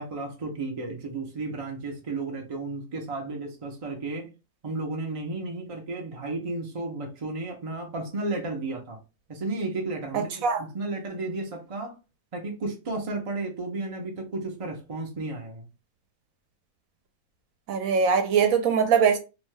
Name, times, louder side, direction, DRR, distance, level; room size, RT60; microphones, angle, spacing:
voice 1, 0.0-4.3 4.6-9.0 9.3-12.0 12.3-15.7, right 2 dB, 55° right, 0.3 m, -33 dB
voice 2, 17.7-19.2, right 6 dB, 70° right, 1.0 m, -21 dB
2.8 x 2.2 x 3.1 m
omnidirectional pair, 1.6 m